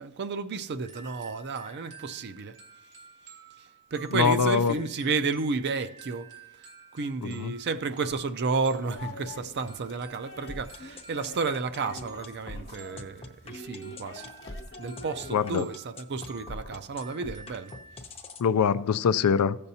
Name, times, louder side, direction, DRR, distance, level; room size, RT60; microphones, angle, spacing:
voice 1, 0.0-2.6 3.6-6.3 6.9-14.3 14.8-17.7, right 4 dB, 50° right, 0.5 m, -32 dB
sound 1, 0.8-18.0, right 4 dB, 85° right, 2.4 m, -52 dB
voice 2, 4.1-4.7 7.2-7.5 15.3-15.6 18.4-19.6, left 6 dB, 85° left, 0.4 m, -23 dB
sound 2, 8.7-15.7, left 2 dB, 60° left, 1.0 m, -46 dB
sound 3, 10.5-18.5, left 2 dB, 25° left, 0.6 m, -42 dB
15.0 x 6.9 x 2.8 m
head